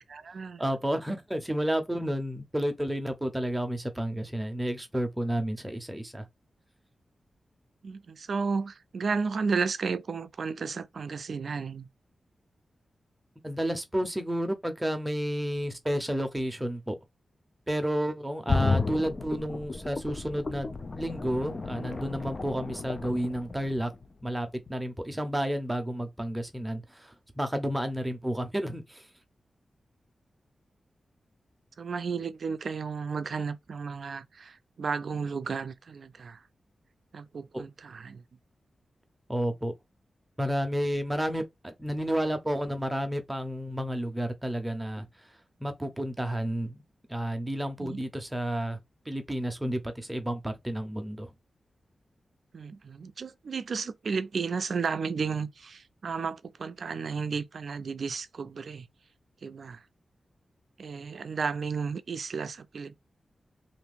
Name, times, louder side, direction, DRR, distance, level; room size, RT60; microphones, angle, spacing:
voice 1, 0.0-0.6 7.8-11.9 18.5-18.6 31.8-36.4 37.1-38.2 47.8-48.0 52.5-58.9 59.4-59.8 60.8-63.0, right 5 dB, 65° right, 0.4 m, -33 dB
voice 2, 0.6-6.3 13.4-17.0 17.7-23.9 24.2-29.1 37.5-37.6 39.3-39.7 40.4-45.1 45.6-46.8 47.1-48.8 49.1-51.3, equal, 10° right, 0.7 m, -31 dB
sound 1, 18.5-24.3 24.7-24.8, left 3 dB, 40° left, 0.4 m, -33 dB
2.8 x 2.5 x 3.4 m
wide cardioid pair, 100°, 0 cm